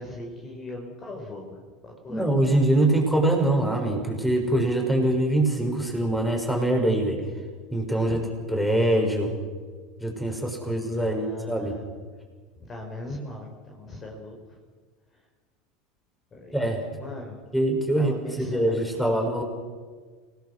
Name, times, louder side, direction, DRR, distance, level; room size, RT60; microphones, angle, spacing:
voice 1, 0.0-2.3 8.1-8.2 10.9-11.8 12.6-14.6 15.1-15.2 16.3-16.6 17.0-17.4 18.0-19.2, left 1 dB, 30° left, 1 dB, 5.1 m, -39 dB
voice 2, 2.1-7.2 7.7-8.2 8.5-9.3 10.0-11.7 16.5-16.8 17.5-18.1 18.5-19.4, right 1 dB, 5° left, 2 dB, 6.4 m, -23 dB
29.5 x 18.5 x 6.5 m, 1.5 s
figure-of-eight pair, 75°, 0 cm